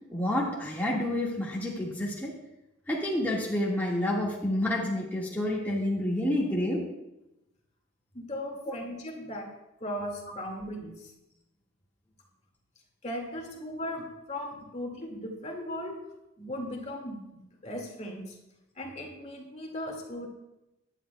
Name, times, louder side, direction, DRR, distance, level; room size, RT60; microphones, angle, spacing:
voice 1, 0.1-2.3 2.9-6.9 8.6-8.7, left 1 dB, 10° left, -5 dB, 1.8 m, -29 dB
voice 2, 8.1-9.5 9.8-11.1 13.0-16.0 16.4-18.4 18.8-20.3, left 1 dB, 35° left, 1 dB, 2.1 m, -37 dB
17.5 x 11.0 x 2.3 m, 0.93 s
head